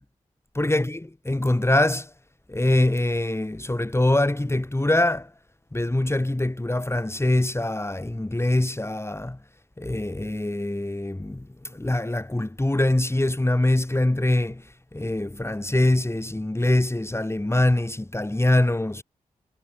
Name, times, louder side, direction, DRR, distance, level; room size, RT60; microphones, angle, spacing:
voice 1, 0.6-2.1 2.5-5.3 5.7-9.4 9.8-11.5 11.7-14.6 14.9-19.0, left 1 dB, 20° left, 4.6 m, -23 dB
supercardioid pair, 40°, 14 cm